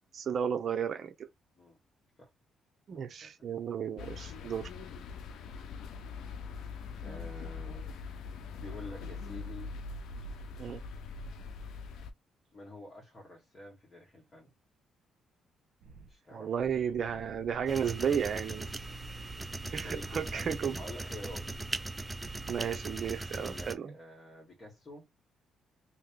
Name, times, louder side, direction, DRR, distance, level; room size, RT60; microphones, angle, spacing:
voice 1, 0.1-1.1 2.9-4.7 10.6-10.8 16.3-18.7 19.7-20.8 22.5-23.9, right 7 dB, 55° right, 0.6 m, -33 dB
voice 2, 2.9-3.5 7.0-8.1 8.5-9.7 12.5-14.5 16.1-16.7 19.7-21.5 23.3-25.1, left 2 dB, 35° left, 2.1 m, -49 dB
sound 1, 4.0-12.1, left 4 dB, 75° left, 0.7 m, -42 dB
sound 2, 15.8-16.1 16.4-20.7 21.2-21.8 22.2-22.8, right 3 dB, 75° right, 1.1 m, -52 dB
sound 3, 17.7-23.7, right 2 dB, 15° right, 0.5 m, -39 dB
3.2 x 3.0 x 3.7 m
cardioid pair, 90°, 0 cm